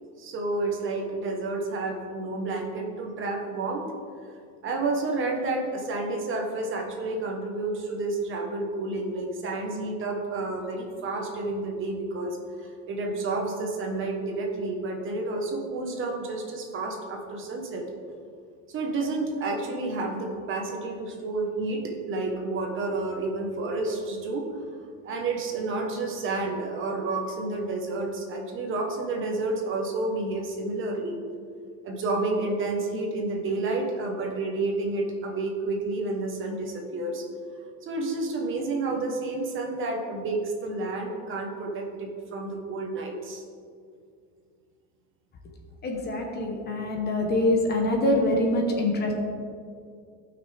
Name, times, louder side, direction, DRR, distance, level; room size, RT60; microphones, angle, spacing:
voice 1, 0.2-3.9 4.6-17.8 18.7-24.5 25.0-31.2 31.8-37.3 37.8-43.4, right 2 dB, 35° right, 2 dB, 1.2 m, -30 dB
voice 2, 45.8-49.1, left 1 dB, 25° left, 1 dB, 1.1 m, -24 dB
16.0 x 6.0 x 3.4 m, 2.3 s
cardioid pair, 165°, 37 cm